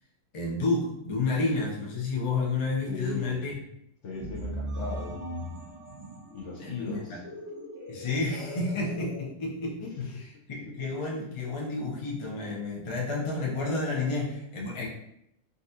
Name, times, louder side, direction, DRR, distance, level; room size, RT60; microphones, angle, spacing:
voice 1, 0.3-3.6 6.6-7.2 7.9-10.0 10.5-14.9, left 3 dB, 35° left, -3 dB, 0.5 m, -30 dB
voice 2, 2.9-3.4 4.0-5.2 6.3-7.2 10.0-10.2 10.7-10.8, left 4 dB, 65° left, -2 dB, 0.8 m, -37 dB
sound 1, 4.1-9.2, equal, 40° right, 1.3 m, -39 dB
sound 2, 4.7-7.8, right 2 dB, 90° right, 1.1 m, -50 dB
3.9 x 2.3 x 2.7 m, 0.76 s
omnidirectional pair, 1.5 m